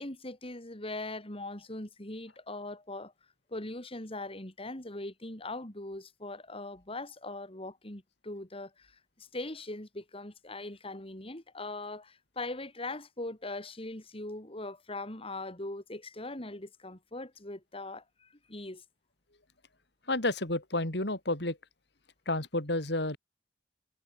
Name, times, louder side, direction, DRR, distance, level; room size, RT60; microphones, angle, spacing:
voice 1, 0.0-3.1 3.5-18.8, left 2 dB, 30° left, 4.0 m, -41 dB
voice 2, 20.1-21.6 22.3-23.2, left 2 dB, 65° left, 5.2 m, -30 dB
head